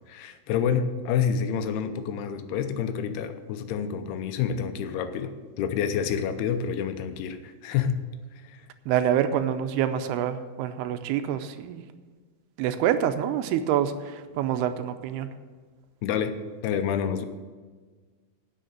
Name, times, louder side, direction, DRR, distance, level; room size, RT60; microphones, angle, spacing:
voice 1, 0.1-8.0 8.3-8.7 16.0-16.4 16.6-17.3, left 7 dB, 80° left, 9 dB, 2.7 m, -28 dB
voice 2, 8.9-11.8 12.6-15.3, right 10 dB, 85° right, 9 dB, 2.7 m, -26 dB
9.2 x 6.5 x 8.7 m, 1.5 s
omnidirectional pair, 4.6 m